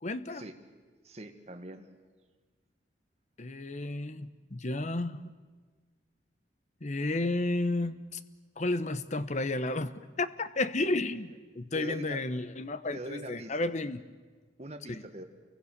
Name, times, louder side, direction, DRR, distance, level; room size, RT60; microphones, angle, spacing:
voice 1, 0.0-0.4 3.4-5.3 6.8-8.2 8.6-14.0 14.9-15.0, left 2 dB, 40° left, 13 dB, 1.0 m, -32 dB
voice 2, 1.0-1.9 11.7-12.2 12.9-13.6 14.6-15.2, right 1 dB, 35° right, 6 dB, 1.9 m, -42 dB
29.0 x 23.5 x 6.7 m, 1.4 s
head